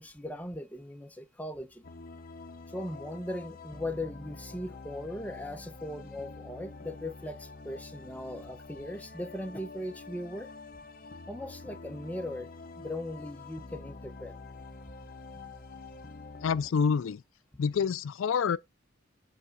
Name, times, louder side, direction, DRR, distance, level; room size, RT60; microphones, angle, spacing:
voice 1, 0.0-1.9 2.7-10.5 11.3-12.5 12.8-14.3, left 1 dB, 10° left, 0.8 m, -39 dB
sound 1, 1.8-16.7, left 3 dB, 45° left, 0.7 m, -47 dB
voice 2, 16.4-17.2 17.6-18.6, left 6 dB, 75° left, 0.4 m, -27 dB
8.5 x 3.5 x 5.1 m
head